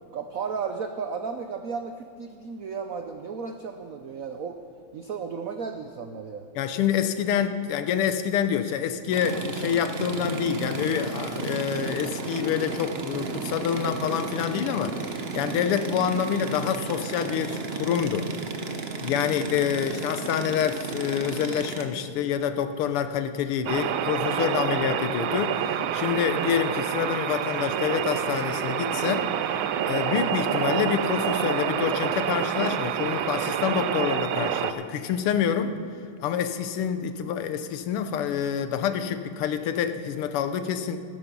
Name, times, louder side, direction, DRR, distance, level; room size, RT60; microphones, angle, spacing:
voice 1, 0.1-4.6 4.9-6.5, right 5 dB, 90° right, 6 dB, 0.7 m, -34 dB
voice 2, 6.6-18.3 19.0-29.3 29.9-35.8 36.2-41.0, left 8 dB, 85° left, 10 dB, 1.7 m, -27 dB
sound 1, 9.1-21.8, right 4 dB, 50° right, 0.7 m, -33 dB
sound 2, 23.7-34.7, right 9 dB, 75° right, 1.4 m, -27 dB
15.5 x 13.0 x 5.3 m, 2.5 s
omnidirectional pair, 2.4 m